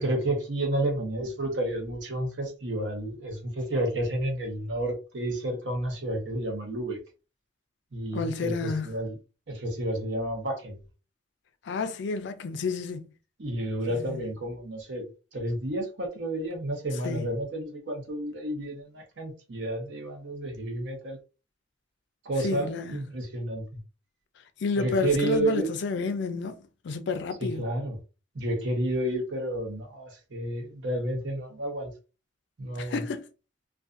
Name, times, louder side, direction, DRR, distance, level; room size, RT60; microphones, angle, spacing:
voice 1, 0.0-7.0 7.9-9.2 9.5-10.8 13.4-15.0 15.3-21.2 22.2-23.6 24.8-25.7 27.4-28.0 28.3-31.9 32.6-33.0, right 1 dB, 70° right, 0.9 m, -31 dB
voice 2, 8.1-8.9 11.6-13.1 13.9-14.2 17.0-17.3 22.4-22.9 24.6-26.6 26.8-27.6 32.8-33.2, left 4 dB, 65° left, 0.4 m, -30 dB
2.5 x 2.3 x 2.4 m
head